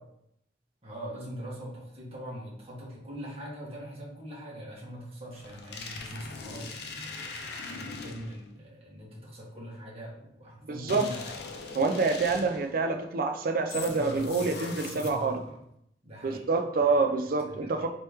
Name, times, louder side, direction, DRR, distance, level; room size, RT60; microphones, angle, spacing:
voice 1, 0.8-11.4 11.8-11.9 14.7-15.6 16.0-16.5 16.9-17.0 17.5-17.9, equal, 35° right, -5 dB, 1.4 m, -42 dB
sound 1, 5.3-8.5 10.9-12.7 13.7-15.4, left 4 dB, 60° left, 0.6 m, -40 dB
voice 2, 10.7-11.0 11.8-15.4 16.2-17.9, right 4 dB, 55° right, 5 dB, 0.5 m, -27 dB
4.3 x 3.0 x 3.5 m, 0.75 s
head